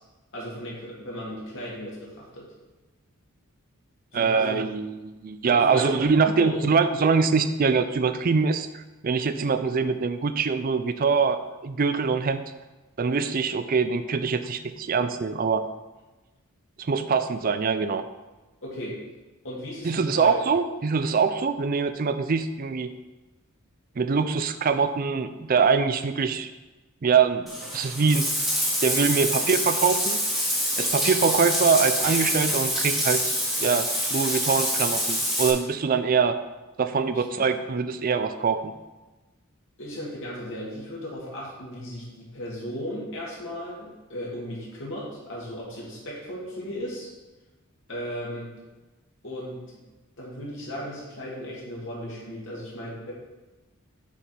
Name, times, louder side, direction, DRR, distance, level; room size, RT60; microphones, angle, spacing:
voice 1, 0.3-2.5 4.1-4.6 5.4-5.9 6.4-6.5 18.6-19.0 19.4-20.3 37.1-37.4 39.8-47.1 47.9-48.5 49.2-49.6 50.2-53.1, equal, 60° left, -5 dB, 2.0 m, -36 dB
voice 2, 4.1-12.4 13.0-15.6 16.8-18.0 19.8-22.9 24.0-26.5 27.0-28.2 28.8-30.2 30.8-33.3 33.6-36.4 36.8-38.7, right 5 dB, 40° right, 11 dB, 0.4 m, -24 dB
Bathtub (filling or washing), 27.5-35.5, equal, ahead, 1.3 m, -26 dB
7.1 x 4.6 x 5.2 m, 1.2 s
head